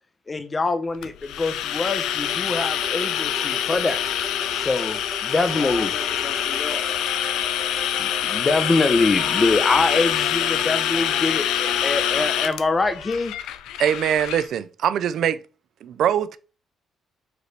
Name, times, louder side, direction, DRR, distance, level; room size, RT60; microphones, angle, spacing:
voice 1, 0.3-4.0 4.4-5.9 8.0-13.3, left 3 dB, 30° left, 0.6 m, -24 dB
sound 1, 1.0-14.5, left 10 dB, 90° left, 0.3 m, -25 dB
sound 2, 2.2-12.5, right 4 dB, 50° right, 1.1 m, -39 dB
voice 2, 5.2-7.4, left 2 dB, 50° left, 1.7 m, -37 dB
voice 3, 13.8-15.4 15.8-16.4, right 9 dB, 70° right, 0.3 m, -22 dB
4.9 x 3.1 x 3.2 m
cardioid pair, 90°, 0 cm